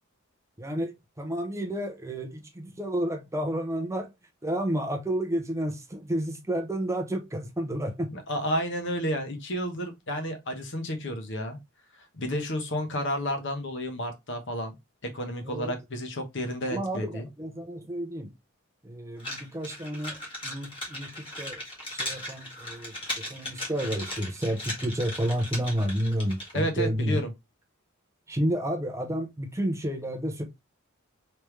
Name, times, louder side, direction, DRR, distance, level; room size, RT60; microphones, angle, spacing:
voice 1, 0.6-4.1 4.4-8.1 15.4-15.7 16.7-18.3 18.8-21.6 21.9-22.9 23.3-27.2 28.3-30.4, right 1 dB, 15° right, 0.5 m, -31 dB
voice 2, 8.1-11.6 12.1-14.7 15.0-17.3 26.5-27.3, equal, 60° left, 1.0 m, -31 dB
sound 1, 19.2-26.7, left 1 dB, 25° left, 1.5 m, -37 dB
3.3 x 3.2 x 3.1 m
head